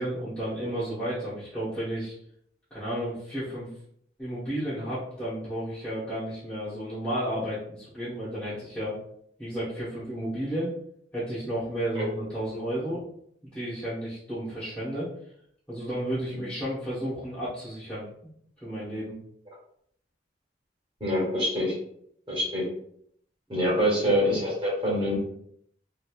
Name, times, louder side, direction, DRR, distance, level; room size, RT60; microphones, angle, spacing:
voice 1, 0.0-2.1 2.7-3.7 4.2-9.0 9.4-10.7 11.1-13.0 13.5-15.1 15.7-18.3 18.6-19.1, right 1 dB, 10° left, -14 dB, 1.0 m, -32 dB
voice 2, 21.0-21.7 22.3-22.6 23.5-25.2, equal, 30° right, -5 dB, 1.2 m, -25 dB
2.9 x 2.8 x 2.3 m, 0.68 s
head